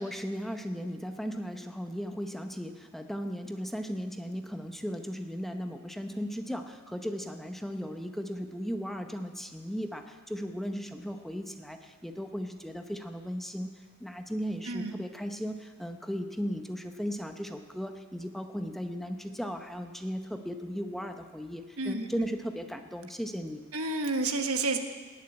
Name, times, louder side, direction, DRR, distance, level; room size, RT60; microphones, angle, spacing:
voice 1, 0.0-23.6, equal, ahead, 5 dB, 0.7 m, -36 dB
voice 2, 14.7-15.0 21.8-22.1 23.7-24.8, right 3 dB, 70° right, 6 dB, 1.4 m, -30 dB
19.0 x 7.3 x 8.9 m, 1.4 s
head